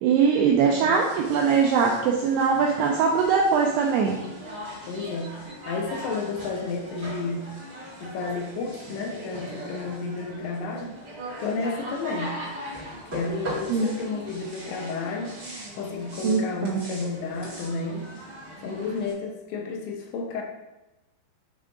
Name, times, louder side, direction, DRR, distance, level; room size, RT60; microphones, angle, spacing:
voice 1, 0.0-4.2 13.7-13.9 16.2-16.9, right 5 dB, 85° right, 0 dB, 2.3 m, -22 dB
voice 2, 0.6-1.0 4.9-7.6 8.0-10.9 11.4-12.4 13.1-15.4 15.7-18.1 18.6-20.4, left 3 dB, 80° left, 1 dB, 3.0 m, -31 dB
sound 1, 0.9-19.1, equal, 45° right, 1.4 m, -40 dB
8.2 x 3.6 x 3.7 m, 1.0 s
omnidirectional pair, 5.3 m